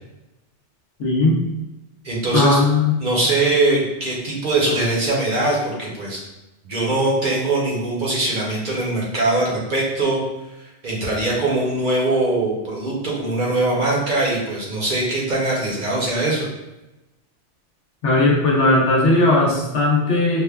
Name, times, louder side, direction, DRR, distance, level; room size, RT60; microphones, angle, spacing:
voice 1, 1.0-1.4 2.3-2.9 18.0-20.4, left 2 dB, 75° left, -2 dB, 1.1 m, -17 dB
voice 2, 2.0-2.6 3.0-6.2 6.6-10.2 10.6-16.5, right 2 dB, 50° right, -4 dB, 0.8 m, -21 dB
5.2 x 2.1 x 2.3 m, 0.98 s
omnidirectional pair, 1.2 m